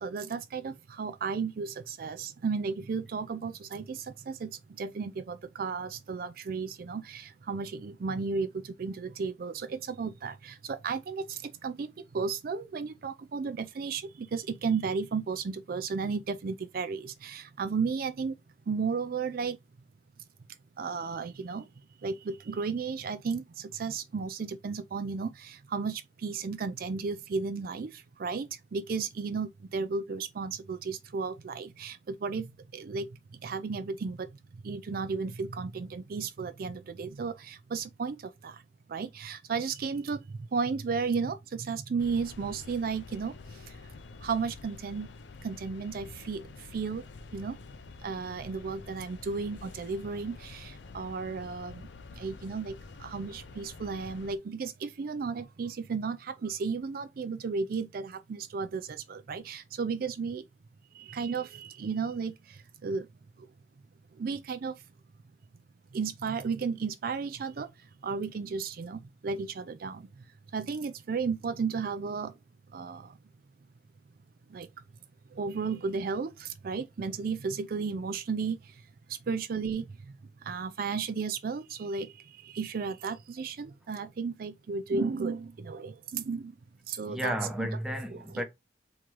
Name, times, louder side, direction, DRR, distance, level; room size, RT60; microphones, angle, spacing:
voice 1, 0.0-4.5 4.8-11.9 12.1-18.3 18.7-19.6 20.8-21.6 22.0-27.9 28.2-32.5 32.7-33.1 33.4-34.3 34.6-38.2 38.4-38.5 38.9-40.2 40.5-43.3 44.2-45.1 45.4-46.4 46.7-47.0 47.3-47.6 48.0-51.8 52.2-52.7 53.0-60.4 61.0-62.3 62.8-63.1 64.2-64.7 65.9-67.7 68.0-70.0 70.5-72.3 72.7-73.1 74.5-74.7 75.4-78.6 79.3-79.8 80.5-82.1 82.4-86.5 86.9-87.7 88.1-88.4, right 5 dB, 55° right, 0.4 m, -34 dB
sound 1, 42.0-54.4, left 3 dB, 80° left, 0.5 m, -48 dB
voice 2, 87.1-88.4, equal, 5° right, 0.8 m, -33 dB
3.7 x 3.0 x 4.6 m
head